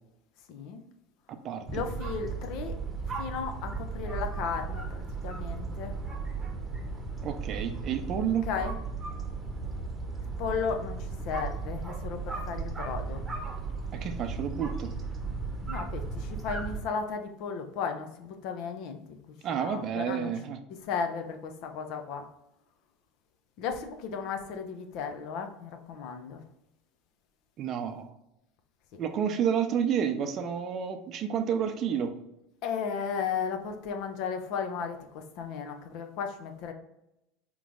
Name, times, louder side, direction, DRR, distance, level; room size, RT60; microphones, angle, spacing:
voice 1, 0.5-0.8 1.7-2.7 3.2-5.9 8.5-8.7 10.4-13.2 15.7-19.0 19.5-20.3 20.8-22.2 23.6-26.4 28.9-29.0 32.6-36.7, left 6 dB, 60° left, 5 dB, 0.6 m, -35 dB
voice 2, 1.3-1.8 7.2-8.5 13.9-14.9 19.4-20.6 27.6-28.1 29.0-32.1, right 8 dB, 45° right, 7 dB, 0.5 m, -30 dB
sound 1, 1.7-16.8, right 4 dB, 20° right, 0.9 m, -36 dB
3.9 x 3.0 x 3.7 m, 0.86 s
hypercardioid pair, 90°, 0 cm